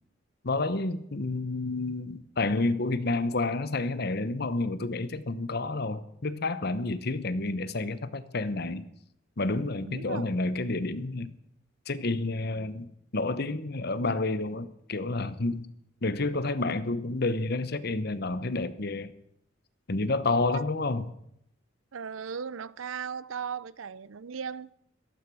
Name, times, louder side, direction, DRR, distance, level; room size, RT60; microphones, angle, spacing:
voice 1, 0.4-8.9 9.4-11.3 11.9-15.7 16.0-19.1 19.9-21.1, left 2 dB, 50° left, 0.9 m, -30 dB
voice 2, 9.8-10.4 20.5-20.6 21.9-24.8, right 6 dB, 85° right, 0.6 m, -37 dB
15.0 x 13.0 x 6.2 m
head